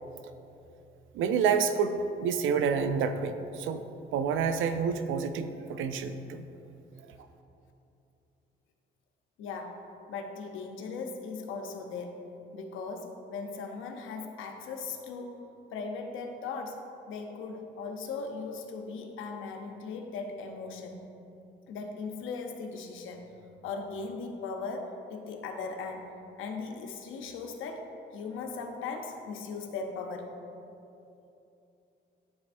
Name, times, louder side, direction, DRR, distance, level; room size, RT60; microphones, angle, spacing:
voice 1, 1.1-3.8 4.1-6.5, right 6 dB, 80° right, 9 dB, 0.5 m, -28 dB
voice 2, 9.4-9.8 10.1-12.3 12.5-15.4 15.7-21.1 21.7-23.3 23.6-26.1 26.4-30.3, left 4 dB, 85° left, 3 dB, 0.8 m, -38 dB
12.0 x 4.1 x 2.6 m, 2.8 s
cardioid pair, 90°, 20 cm